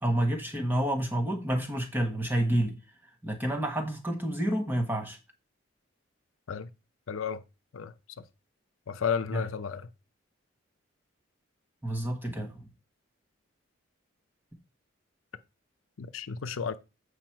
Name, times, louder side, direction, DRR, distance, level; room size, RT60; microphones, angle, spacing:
voice 1, 0.0-2.7 3.2-5.2 9.3-9.4 11.8-12.6, right 1 dB, 10° right, 1.2 m, -29 dB
voice 2, 7.1-7.4 7.7-7.9 8.9-9.9 16.0-16.8, left 6 dB, 85° left, 0.6 m, -32 dB
7.9 x 4.9 x 4.5 m
head